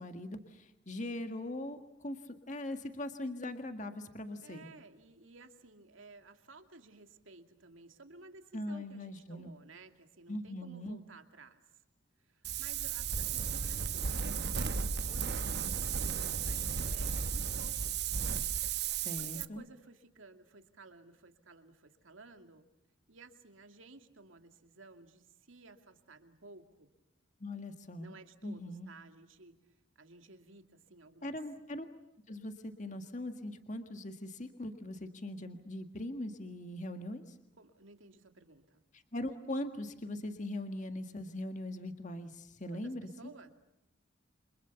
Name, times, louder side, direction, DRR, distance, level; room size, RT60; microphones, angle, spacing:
voice 1, 0.0-4.7 8.5-9.6 10.3-11.0 19.0-19.6 27.4-28.2 28.4-28.9 31.2-31.9 32.3-37.4 38.9-43.3, left 1 dB, 40° left, 7 dB, 1.7 m, -41 dB
voice 2, 4.4-11.8 12.2-18.0 19.2-22.7 23.1-26.9 28.0-29.6 30.0-31.4 37.6-38.8 42.7-43.5, right 3 dB, 85° right, 6 dB, 2.6 m, -56 dB
Wind, 12.4-19.5, right 6 dB, 55° right, 1.0 m, -34 dB
29.0 x 26.0 x 7.0 m, 0.87 s
head